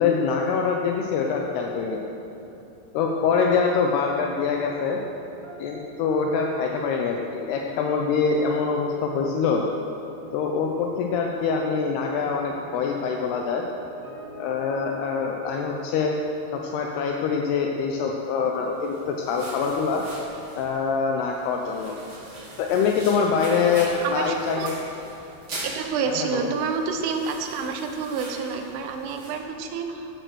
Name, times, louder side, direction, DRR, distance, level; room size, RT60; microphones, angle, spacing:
voice 1, 0.0-2.0 2.9-5.0 5.6-9.6 10.3-13.6 14.4-16.2 16.5-20.0 20.6-22.0 22.6-24.8 26.1-26.5, left 5 dB, 80° left, 1 dB, 2.4 m, -24 dB
sound 1, 4.5-21.3, right 1 dB, 65° right, 4.7 m, -46 dB
sound 2, 18.6-29.4, right 1 dB, 30° right, 3.8 m, -41 dB
voice 2, 24.0-24.8 25.6-30.2, right 5 dB, 85° right, 5 dB, 3.6 m, -29 dB
16.0 x 9.1 x 6.3 m, 3.0 s
omnidirectional pair, 5.5 m